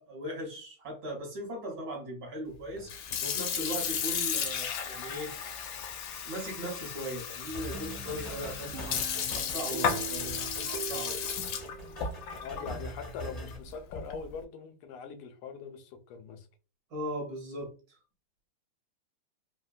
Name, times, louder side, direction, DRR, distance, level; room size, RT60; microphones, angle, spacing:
voice 1, 0.0-2.9 3.2-5.3 6.2-11.2 16.9-17.7, equal, 55° right, 1.2 m, -38 dB
Sink (filling or washing) / Fill (with liquid), 2.8-14.3, left 7 dB, 75° left, 1.2 m, -34 dB
sound 1, 7.4-13.6, equal, 35° left, 0.5 m, -44 dB
sound 2, 7.7-12.4, right 9 dB, 75° right, 0.9 m, -44 dB
voice 2, 12.4-16.5, left 6 dB, 90° left, 1.5 m, -42 dB
3.7 x 2.1 x 2.3 m
omnidirectional pair, 2.4 m